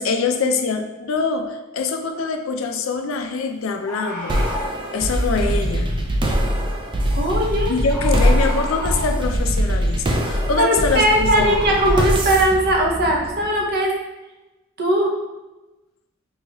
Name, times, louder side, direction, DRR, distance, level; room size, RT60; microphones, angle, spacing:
voice 1, 0.0-4.6 4.9-5.9 7.7-11.7, left 4 dB, 65° left, 5 dB, 0.4 m, -24 dB
Bird, 2.1-2.3 3.8-4.8 7.1-7.3 7.9-9.2 11.3-12.1, left 1 dB, 10° left, 0.9 m, -32 dB
sound 1, 4.3-13.7, equal, 25° right, 0.4 m, -22 dB
voice 2, 7.1-7.7 10.6-13.9 14.8-15.1, right 1 dB, 50° right, 0 dB, 0.7 m, -19 dB
5.3 x 2.3 x 2.9 m, 1.1 s
head